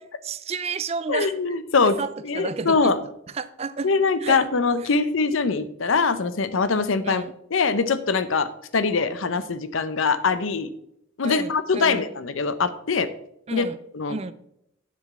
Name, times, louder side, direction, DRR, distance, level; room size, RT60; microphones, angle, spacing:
voice 1, 0.2-1.3 1.8-2.9 3.3-3.9 4.2-4.4 7.0-7.3 11.2-12.0 13.5-13.8 14.1-14.3, right 4 dB, 30° right, 14 dB, 0.4 m, -31 dB
voice 2, 1.1-2.0 2.2-3.0 3.8-7.2 7.5-10.7 11.2-13.1 13.5-13.7 13.9-14.2, left 4 dB, 80° left, 13 dB, 0.7 m, -23 dB
7.4 x 6.1 x 5.4 m, 0.77 s
head